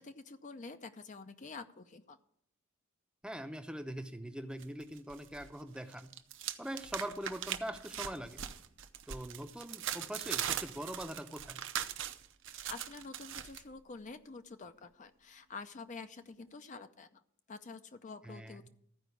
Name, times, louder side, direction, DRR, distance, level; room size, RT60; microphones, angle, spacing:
voice 1, 0.0-2.2 12.5-17.2 17.5-18.7, left 4 dB, 35° left, 9 dB, 0.5 m, -48 dB
voice 2, 3.2-6.1 6.6-8.4 9.1-11.6 18.2-18.7, right 1 dB, 5° right, 8 dB, 0.6 m, -42 dB
sound 1, 4.6-5.5 5.8-13.6, right 10 dB, 60° right, 0.7 m, -40 dB
14.0 x 5.0 x 8.2 m, 0.69 s
head